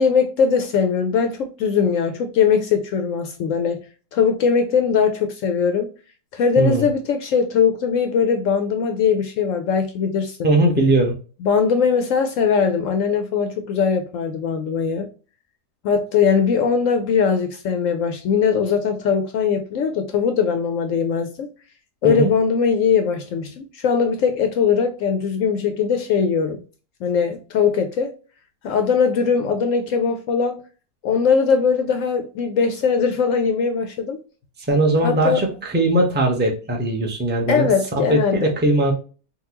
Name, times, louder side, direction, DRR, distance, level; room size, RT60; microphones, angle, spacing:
voice 1, 0.0-3.8 4.1-5.9 6.3-10.5 11.4-15.1 15.8-21.5 22.0-26.6 27.0-28.1 28.6-30.6 31.0-34.2 35.0-35.4 37.5-38.5, left 6 dB, 70° left, 0.8 m, -20 dB
voice 2, 6.6-6.9 10.4-11.1 22.0-22.3 34.7-37.7 38.1-38.9, right 2 dB, 15° right, 0.4 m, -19 dB
3.8 x 2.3 x 2.8 m
omnidirectional pair, 1.7 m